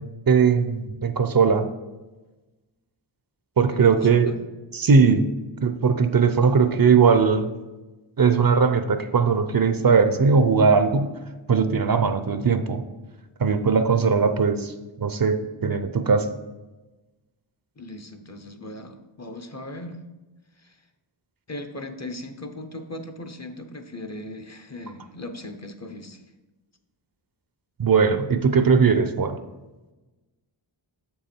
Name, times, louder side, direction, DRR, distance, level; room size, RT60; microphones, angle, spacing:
voice 1, 0.0-1.7 3.6-4.3 4.7-5.3 5.6-7.5 8.2-11.2 11.5-12.8 13.4-16.3 27.8-29.4, right 5 dB, 50° right, 9 dB, 0.6 m, -19 dB
voice 2, 3.7-4.4 17.8-20.0 20.6-20.8 21.5-26.2, left 1 dB, 35° left, 7 dB, 0.7 m, -38 dB
6.9 x 5.6 x 4.3 m, 1.1 s
wide cardioid pair, 80°, 47 cm